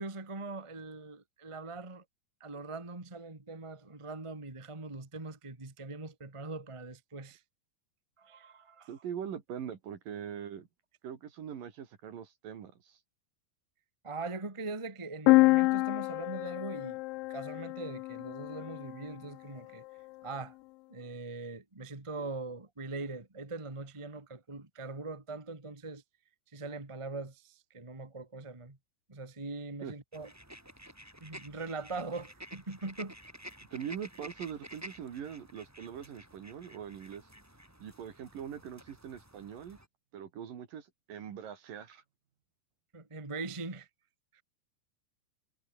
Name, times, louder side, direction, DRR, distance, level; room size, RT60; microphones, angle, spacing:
voice 1, 0.0-2.0 2.4-7.4 8.2-8.9 14.0-17.0 17.3-19.8 20.2-20.5 20.9-26.0 26.5-28.8 29.1-30.3 31.2-33.1 42.9-43.9 44.3-44.4, right 3 dB, 35° right, 0.4 m, -41 dB
voice 2, 8.9-10.7 11.0-13.0 29.8-29.9 33.7-37.2 37.8-39.8 40.1-42.0, right 8 dB, 55° right, 3.6 m, -42 dB
sound 1, 15.3-19.0, left 22 dB, 90° left, 3.0 m, -27 dB
sound 2, 30.1-39.9, right 1 dB, 5° right, 3.5 m, -51 dB
omnidirectional pair, 5.3 m